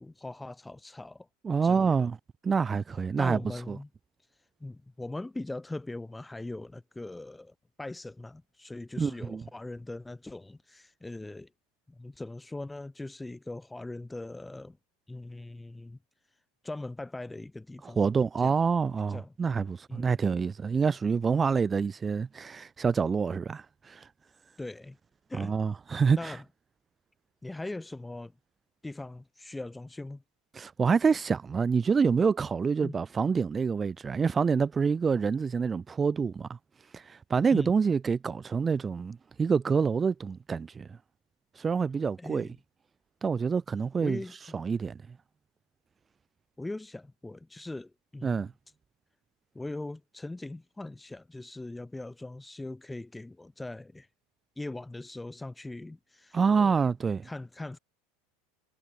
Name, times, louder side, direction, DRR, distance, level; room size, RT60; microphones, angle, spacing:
voice 1, 0.0-1.3 1.6-2.1 3.2-3.9 4.6-11.5 11.9-14.8 15.1-16.0 16.6-18.0 18.4-18.5 19.1-19.3 19.9-20.1 24.6-25.0 25.3-25.5 26.1-26.4 27.4-28.3 28.8-30.2 32.8-33.0 37.5-37.7 42.2-42.5 44.0-44.6 46.6-48.4 49.6-54.1 54.6-56.8 57.2-57.8, left 2 dB, 10° left, 6.9 m, -40 dB
voice 2, 1.4-2.2 2.4-3.4 3.7-3.8 9.0-9.4 17.8-24.1 25.3-26.4 30.5-36.6 36.9-41.0 41.5-42.5 43.2-44.2 44.5-45.0 48.2-48.5 56.3-57.3, right 5 dB, 25° right, 3.3 m, -27 dB
hypercardioid pair, 80°, 0 cm